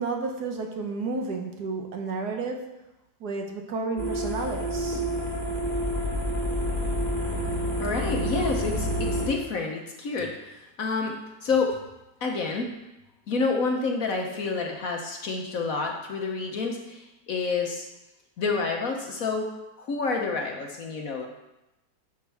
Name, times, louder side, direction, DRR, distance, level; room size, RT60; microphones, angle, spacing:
voice 1, 0.0-2.6 3.2-5.0, right 3 dB, 65° right, 3 dB, 1.4 m, -31 dB
sound 1, 4.0-9.2, equal, 25° right, 2.5 m, -28 dB
voice 2, 7.8-11.8 12.2-12.8 13.3-17.9 18.4-21.3, left 4 dB, 55° left, 2 dB, 1.1 m, -29 dB
10.5 x 6.4 x 3.4 m, 0.97 s
omnidirectional pair, 2.0 m